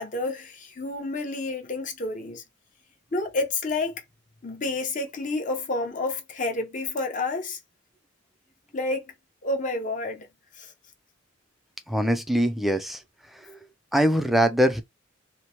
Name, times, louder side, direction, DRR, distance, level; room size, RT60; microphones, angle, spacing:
voice 1, 0.0-2.4 3.1-4.0 4.4-7.6 8.7-9.1 9.4-10.3 10.6-10.7, left 2 dB, 40° left, 0.7 m, -29 dB
voice 2, 11.9-13.0 13.3-13.6 13.9-14.8, equal, ahead, 0.3 m, -23 dB
2.9 x 2.0 x 2.8 m
head